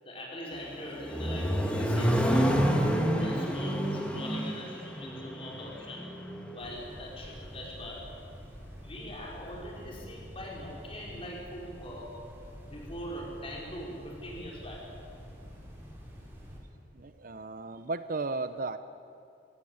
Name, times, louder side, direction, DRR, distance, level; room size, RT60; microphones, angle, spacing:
voice 1, 0.0-2.6 3.2-6.2 6.5-8.1 8.8-12.2 12.7-14.9, left 1 dB, 30° left, -2 dB, 4.7 m, -42 dB
Accelerating revving vroom, 0.5-6.5, equal, 5° left, 1.9 m, -28 dB
sound 1, 6.6-16.6, equal, 15° right, 4.9 m, -47 dB
voice 2, 16.9-18.8, right 3 dB, 50° right, 12 dB, 0.7 m, -35 dB
22.0 x 17.0 x 8.0 m, 2.5 s
head